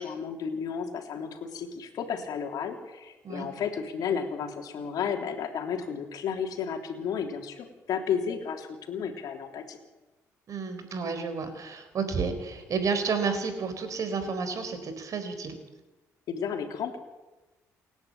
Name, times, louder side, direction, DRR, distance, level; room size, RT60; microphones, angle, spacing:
voice 1, 0.0-9.8 16.3-17.0, left 7 dB, 70° left, 4 dB, 3.4 m, -33 dB
voice 2, 10.5-15.6, right 5 dB, 55° right, 9 dB, 4.4 m, -31 dB
28.5 x 10.5 x 8.9 m, 1.1 s
supercardioid pair, 70°, 7 cm